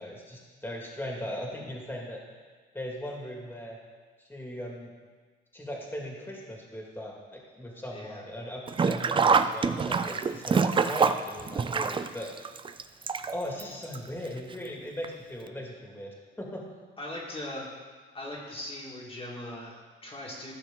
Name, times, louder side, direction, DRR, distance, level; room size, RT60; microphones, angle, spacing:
voice 1, 0.0-2.2 2.7-3.8 4.2-4.9 5.5-12.3 13.3-16.6, left 1 dB, 10° left, -2 dB, 2.2 m, -38 dB
voice 2, 7.9-8.2 17.0-17.7 18.1-20.5, left 1 dB, 30° left, -5 dB, 2.0 m, -39 dB
Sink (filling or washing), 8.7-13.6 13.9-14.0 15.0-15.1 15.5-15.6, right 5 dB, 25° right, 0.4 m, -25 dB
13.5 x 5.8 x 3.8 m, 1.4 s
cardioid pair, 90°, 20 cm